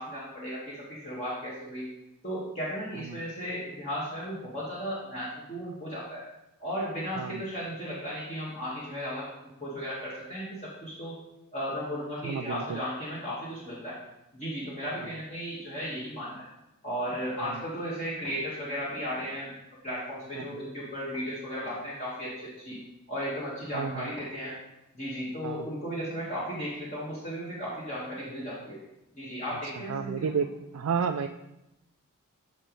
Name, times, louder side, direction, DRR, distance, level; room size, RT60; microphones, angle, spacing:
voice 1, 0.0-1.9 2.2-6.2 6.6-9.3 9.6-11.1 11.5-14.0 14.3-16.5 16.8-19.5 19.8-22.8 23.1-24.6 24.9-28.8 29.2-30.3, equal, 30° left, -8 dB, 1.7 m, -35 dB
voice 2, 12.2-12.8 17.4-17.6 20.4-20.6 23.7-24.1 25.4-25.7 29.9-30.5 30.7-31.3, right 6 dB, 85° right, 5 dB, 0.4 m, -31 dB
12.5 x 5.1 x 3.2 m, 0.91 s
head